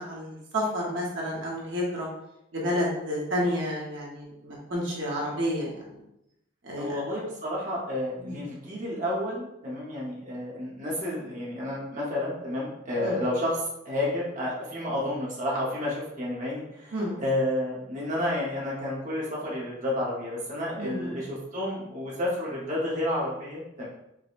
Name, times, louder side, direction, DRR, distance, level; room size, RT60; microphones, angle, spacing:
voice 1, 0.0-2.1 2.5-5.8 6.6-6.9 8.2-8.4 13.0-13.2 16.9-17.2 20.8-21.2, equal, 65° right, -4 dB, 0.9 m, -30 dB
voice 2, 6.8-23.9, left 1 dB, 40° right, -5 dB, 0.9 m, -31 dB
4.8 x 2.1 x 2.4 m, 0.83 s
head